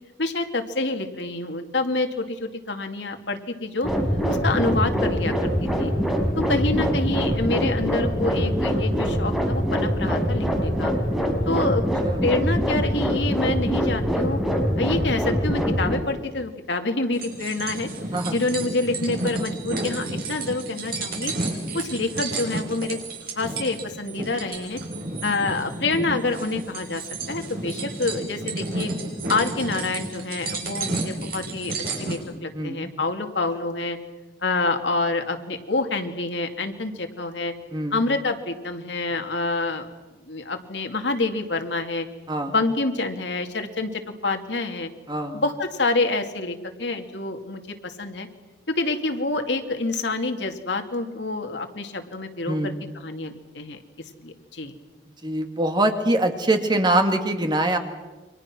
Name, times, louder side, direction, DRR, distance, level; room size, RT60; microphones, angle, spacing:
voice 1, 0.2-3.9 4.3-5.5 5.8-5.9 6.4-10.9 11.5-11.8 12.2-14.4 14.8-17.9 18.3-21.3 21.7-23.0 23.4-24.8 25.2-27.0 27.3-28.9 29.3-34.0 34.4-37.5 37.9-39.9 40.3-42.1 42.5-44.9 45.3-48.3 48.7-53.8 54.2-54.7, left 2 dB, 70° left, 5 dB, 2.5 m, -27 dB
sound 1, 3.8-16.0, equal, ahead, 4.5 m, -23 dB
sound 2, 17.1-32.2, right 2 dB, 55° right, 7.7 m, -31 dB
voice 2, 32.5-32.9 37.7-38.0 42.3-42.5 45.1-45.4 52.5-52.8 55.2-57.8, right 1 dB, 25° right, 6 dB, 2.2 m, -24 dB
30.0 x 25.0 x 6.2 m, 1.2 s
head